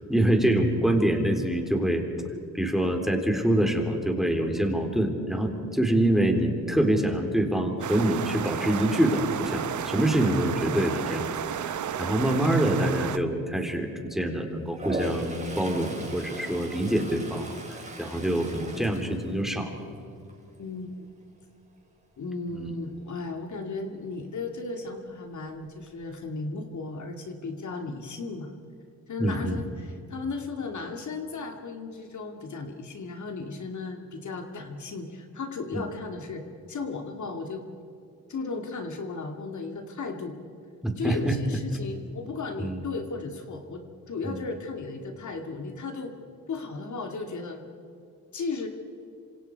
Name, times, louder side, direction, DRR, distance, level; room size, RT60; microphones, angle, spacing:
voice 1, 0.1-2.0 2.5-11.3 11.6-19.8 22.5-22.7 29.2-29.6 35.7-35.8 40.8-41.4 42.6-42.8 44.2-44.4, right 1 dB, ahead, 3 dB, 3.6 m, -25 dB
sound 1, 7.8-13.2, right 9 dB, 55° right, 1.0 m, -32 dB
Toilet flush, 14.7-19.9 20.3-20.7 25.1-25.2 25.5-26.2, right 1 dB, 20° right, 5.1 m, -38 dB
voice 2, 20.6-20.9 22.2-28.5 29.1-37.6 38.3-40.3 41.0-46.1 46.5-47.6 48.3-48.7, left 3 dB, 55° left, 4 dB, 2.5 m, -35 dB
27.0 x 26.5 x 4.7 m, 2.6 s
cardioid pair, 85°, 35 cm